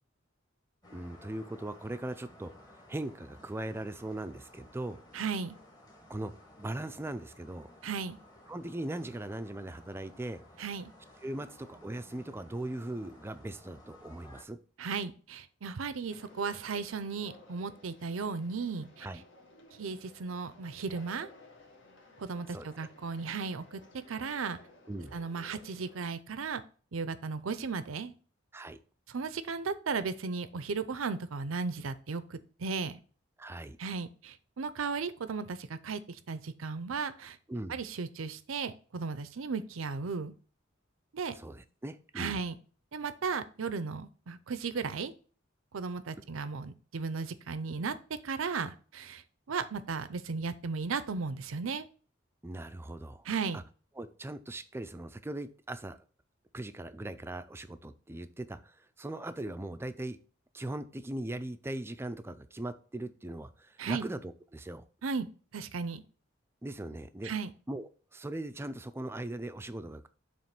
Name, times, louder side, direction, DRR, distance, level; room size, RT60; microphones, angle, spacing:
sound 1, 0.8-14.4, left 1 dB, 20° left, 1.4 m, -56 dB
voice 1, 0.9-5.0 6.1-6.3 6.6-7.7 8.5-10.4 11.2-14.6 19.0-19.2 22.5-22.7 24.9-25.2 28.5-28.8 33.4-33.8 37.5-37.8 41.3-42.4 52.4-53.3 53.5-53.6 54.0-56.0 56.5-60.2 60.5-64.8 66.6-67.3 67.7-70.1, right 1 dB, 10° right, 11 dB, 0.4 m, -39 dB
voice 2, 5.1-5.6 7.8-8.2 10.6-10.9 14.8-19.1 19.8-21.3 22.2-23.8 24.1-24.6 25.1-26.6 26.9-28.1 29.1-32.9 33.8-37.4 37.7-40.3 41.1-41.4 42.2-42.5 42.9-45.1 45.7-49.2 49.5-51.8 53.3-53.6 63.8-64.1 65.0-65.3 65.5-66.0 67.2-67.5, right 5 dB, 90° right, 13 dB, 0.6 m, -35 dB
Conversation, 16.1-26.1, left 2 dB, 65° left, 1.7 m, -56 dB
7.3 x 3.1 x 5.9 m, 0.40 s
head